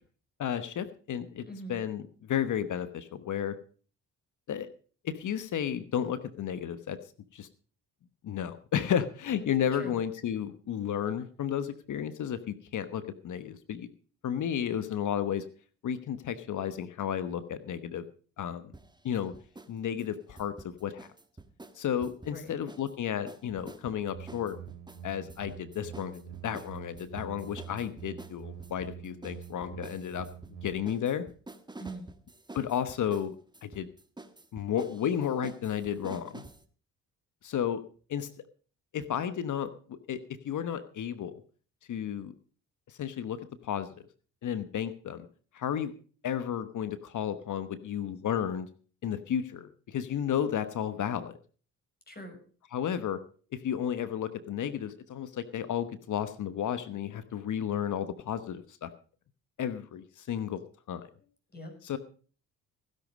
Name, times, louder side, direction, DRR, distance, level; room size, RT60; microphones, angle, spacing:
voice 1, 0.4-3.6 4.5-4.7 5.0-7.0 7.3-7.5 8.2-13.9 14.2-15.4 15.8-18.0 18.4-18.7 19.0-19.3 19.7-21.1 21.7-24.6 25.0-30.3 30.6-31.2 32.5-33.4 33.6-33.9 34.5-36.4 37.4-37.8 38.1-38.3 38.9-41.3 41.9-42.3 42.9-43.9 44.4-45.3 45.5-45.9 46.2-48.7 49.0-51.3 52.7-53.2 53.5-58.9 59.6-60.6 60.9-61.0 61.8-62.0, left 9 dB, 55° left, 13 dB, 1.1 m, -32 dB
voice 2, 1.4-1.7 9.7-10.0 22.3-22.6 31.8-32.1 52.1-52.4 61.5-61.7, right 1 dB, 25° left, 4 dB, 6.3 m, -43 dB
sound 1, 18.7-19.7 20.0-22.9 23.3-36.6, right 2 dB, 10° right, 1.4 m, -49 dB
sound 2, 24.1-30.7, right 10 dB, 90° right, 2.5 m, -46 dB
16.0 x 11.0 x 5.2 m, 0.41 s
supercardioid pair, 65°, 36 cm